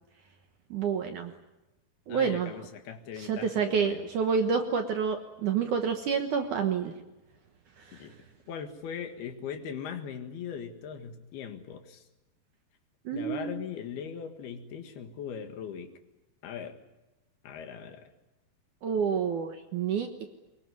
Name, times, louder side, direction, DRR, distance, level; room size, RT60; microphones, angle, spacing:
voice 1, 0.7-1.3 2.1-2.5 3.2-6.9 7.9-8.1 13.1-13.6 18.8-20.3, right 6 dB, 60° right, 6 dB, 2.2 m, -29 dB
voice 2, 2.1-4.1 7.9-8.2 8.5-12.0 13.1-15.9 16.4-16.8 17.4-18.1, left 7 dB, 70° left, 7 dB, 3.5 m, -39 dB
23.0 x 22.5 x 9.6 m, 1.0 s
omnidirectional pair, 4.9 m